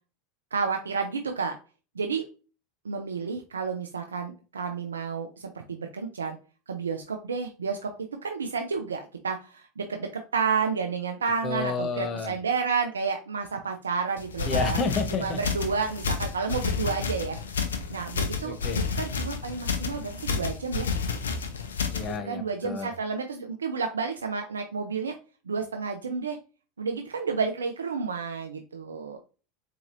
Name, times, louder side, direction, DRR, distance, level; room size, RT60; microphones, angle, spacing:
voice 1, 0.5-1.6 2.0-2.2 2.8-6.4 6.7-7.9 8.2-14.8 15.1-17.4 17.9-18.6 19.0-20.9 22.2-25.2 25.5-26.4 26.8-29.2, right 5 dB, 85° right, 4 dB, 0.4 m, -30 dB
voice 2, 11.4-12.3 14.5-15.4 18.4-18.8 21.9-22.9, left 4 dB, 35° left, 9 dB, 0.7 m, -30 dB
sound 1, 14.2-22.2, left 5 dB, 85° left, 0.5 m, -30 dB
4.0 x 2.8 x 2.5 m, 0.35 s
hypercardioid pair, 85°, 0 cm